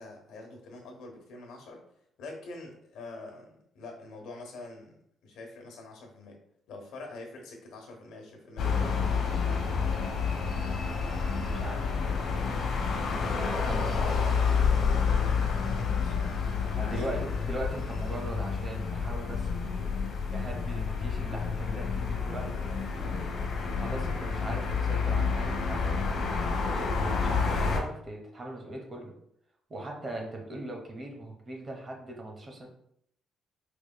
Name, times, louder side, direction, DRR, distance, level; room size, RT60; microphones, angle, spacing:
voice 1, 0.0-1.8 2.2-6.4 6.7-9.3 15.5-17.3 23.0-23.2, left 2 dB, 90° left, 2 dB, 1.0 m, -45 dB
sound 1, 8.6-27.8, left 5 dB, 65° left, 0.9 m, -29 dB
voice 2, 11.3-12.1 13.4-14.1 16.8-23.2 23.8-29.1 29.7-32.7, right 1 dB, 30° right, 1 dB, 0.9 m, -40 dB
4.8 x 3.0 x 2.2 m, 0.70 s
cardioid pair, 150°, 0 cm